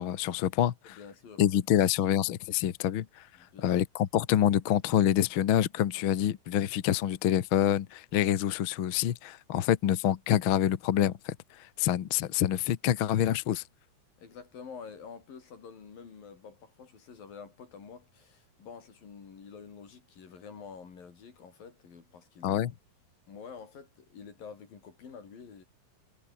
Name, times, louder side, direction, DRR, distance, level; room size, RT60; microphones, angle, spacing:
voice 1, 0.0-1.0 1.4-3.3 3.6-13.6 22.4-22.7, left 11 dB, 60° left, 1.3 m, -27 dB
voice 2, 0.8-1.8 3.4-3.8 14.2-22.7 23.3-25.6, left 6 dB, 90° left, 6.1 m, -48 dB
omnidirectional pair, 3.9 m